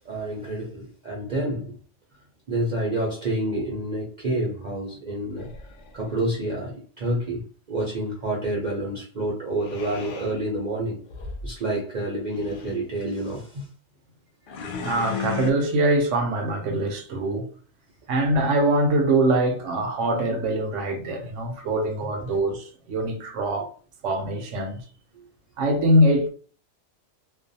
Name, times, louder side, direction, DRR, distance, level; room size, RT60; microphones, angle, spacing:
voice 1, 0.0-1.7 2.5-5.5 5.9-7.4 7.7-11.0 11.4-13.7, right 1 dB, 50° right, 0.6 m, -28 dB
sound 1, 5.4-6.2 9.6-10.4 11.1-11.5 12.2-12.8 14.5-15.5, left 6 dB, 60° left, 0.5 m, -35 dB
voice 2, 14.8-17.5 18.1-23.7 24.0-24.8 25.6-26.3, right 1 dB, 75° right, 0.9 m, -23 dB
2.5 x 2.2 x 2.6 m
omnidirectional pair, 1.3 m